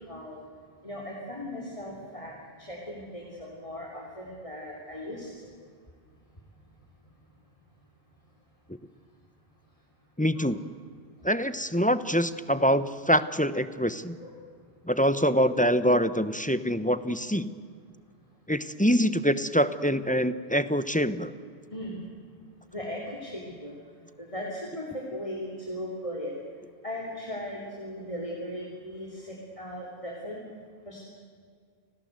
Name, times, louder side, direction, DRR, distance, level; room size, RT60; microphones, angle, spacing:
voice 1, 0.1-0.4 0.8-2.3 2.6-5.5 10.3-10.5 14.2-14.4 21.7-22.0 22.7-23.8 24.2-26.3 26.8-30.4 30.9-31.0, left 1 dB, 30° left, -1 dB, 3.6 m, -38 dB
voice 2, 10.2-10.6 11.2-14.2 14.9-17.5 18.5-21.3, equal, 10° left, 13 dB, 0.8 m, -25 dB
29.5 x 19.5 x 8.0 m, 2.1 s
omnidirectional pair, 1.1 m